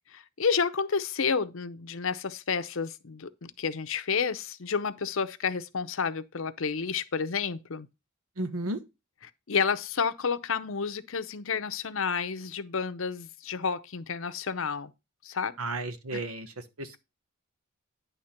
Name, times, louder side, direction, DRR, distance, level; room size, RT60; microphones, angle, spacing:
voice 1, 0.1-7.9 9.5-14.9 15.2-15.6 16.1-16.2, left 5 dB, 65° left, 0.7 m, -30 dB
voice 2, 8.4-8.8 15.6-17.0, right 2 dB, 90° right, 1.2 m, -33 dB
10.0 x 3.5 x 5.8 m
head